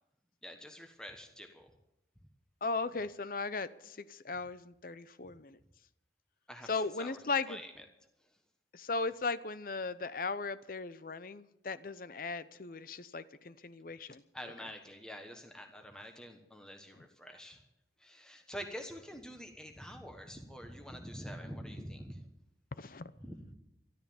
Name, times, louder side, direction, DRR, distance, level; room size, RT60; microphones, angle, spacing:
voice 1, 0.4-1.7 6.5-7.2 7.5-7.8 14.3-17.6 18.0-22.2 23.2-23.5, equal, 5° left, 4 dB, 1.3 m, -46 dB
voice 2, 2.6-5.6 6.7-7.6 8.7-14.2 22.7-23.1, left 4 dB, 50° left, 15 dB, 0.6 m, -37 dB
13.5 x 12.5 x 7.1 m, 0.86 s
head